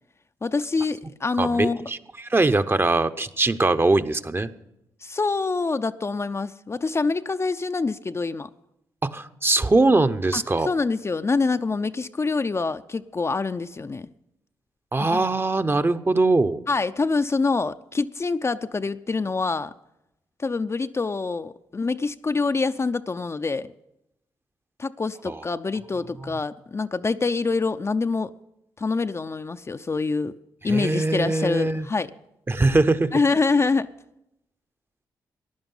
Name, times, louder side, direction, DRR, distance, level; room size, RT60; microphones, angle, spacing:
voice 1, 0.4-1.9 5.0-8.5 10.3-14.1 15.1-15.3 16.7-19.7 20.4-23.7 24.8-28.3 28.8-30.3 30.6-32.1 33.1-33.9, left 4 dB, 30° left, 0.5 m, -25 dB
voice 2, 1.4-4.5 9.0-10.7 14.9-16.6 25.3-25.4 26.2-26.3 30.7-31.9 32.5-33.1, right 2 dB, 25° right, 0.8 m, -22 dB
15.0 x 11.0 x 5.6 m
supercardioid pair, 45°, 9 cm